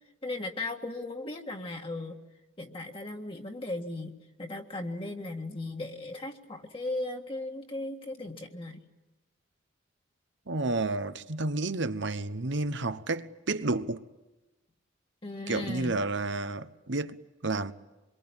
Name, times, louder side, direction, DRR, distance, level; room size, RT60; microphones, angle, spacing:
voice 1, 0.2-2.2 2.6-8.8 15.2-16.0, left 2 dB, 30° left, 1.8 m, -37 dB
voice 2, 10.5-14.0 15.5-17.7, right 2 dB, 65° right, 1.0 m, -31 dB
26.5 x 23.0 x 8.9 m
head